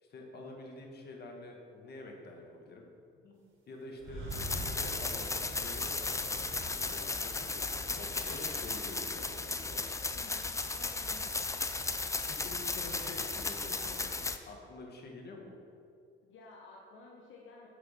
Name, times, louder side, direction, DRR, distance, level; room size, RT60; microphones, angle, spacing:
voice 1, 0.0-2.8 3.2-3.4 3.7-7.6 8.0-10.0 12.3-15.5, left 2 dB, 55° left, 1 dB, 1.4 m, -47 dB
sound 1, 4.0-7.1 7.5-8.7, right 1 dB, 80° right, 2.0 m, -45 dB
sound 2, 4.3-14.4, left 3 dB, 15° left, 0.4 m, -35 dB
voice 2, 10.1-11.5 16.2-17.7, left 3 dB, 75° left, -1 dB, 1.0 m, -54 dB
6.5 x 6.1 x 5.5 m, 2.4 s
cardioid pair, 90°, 20 cm